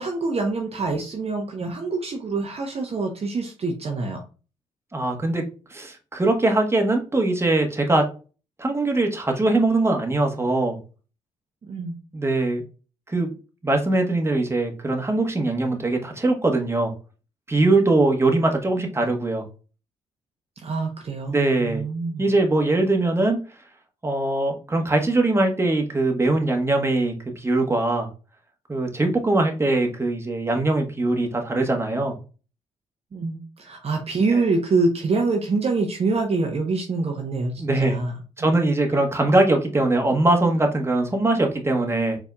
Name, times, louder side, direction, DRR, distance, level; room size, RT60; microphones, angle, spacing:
voice 1, 0.0-4.2 11.7-12.0 20.6-22.3 33.1-38.1 38.4-38.5, right 3 dB, 40° right, 2 dB, 0.9 m, -25 dB
voice 2, 4.9-5.4 5.7-8.1 8.6-10.8 12.1-12.6 13.1-13.4 13.6-16.9 17.5-19.4 21.3-21.8 22.2-23.4 24.0-28.1 28.7-32.1 34.3-34.4 37.6-38.0 38.4-42.2, right 2 dB, 15° right, 3 dB, 1.2 m, -21 dB
4.3 x 3.4 x 2.3 m, 0.34 s
hypercardioid pair, 40°, 15 cm